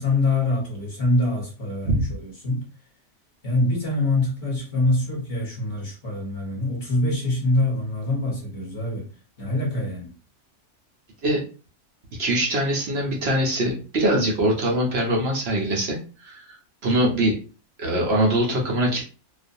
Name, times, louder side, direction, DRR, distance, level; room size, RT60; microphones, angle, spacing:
voice 1, 0.0-2.6 3.4-9.1 9.4-10.1, left 2 dB, 35° left, 0.9 m, -24 dB
voice 2, 12.2-16.5 16.8-17.4 17.8-19.0, right 1 dB, 55° right, 0.8 m, -22 dB
2.4 x 2.2 x 2.6 m
omnidirectional pair, 1.6 m